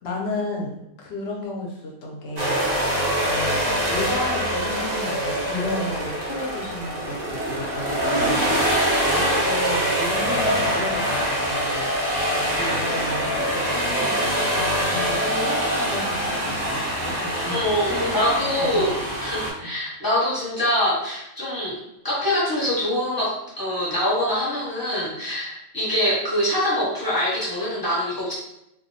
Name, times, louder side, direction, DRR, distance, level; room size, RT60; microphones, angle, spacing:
voice 1, 0.0-3.0 3.2-12.3 12.5-17.6 17.9-19.1 19.6-19.8, left 2 dB, 65° left, -1 dB, 0.7 m, -33 dB
sound 1, 2.4-19.5, equal, 60° right, 0.4 m, -24 dB
voice 2, 17.5-18.9 19.2-21.8 22.0-28.3, left 1 dB, 20° left, -9 dB, 0.8 m, -24 dB
2.3 x 2.1 x 2.6 m, 0.84 s
omnidirectional pair, 1.4 m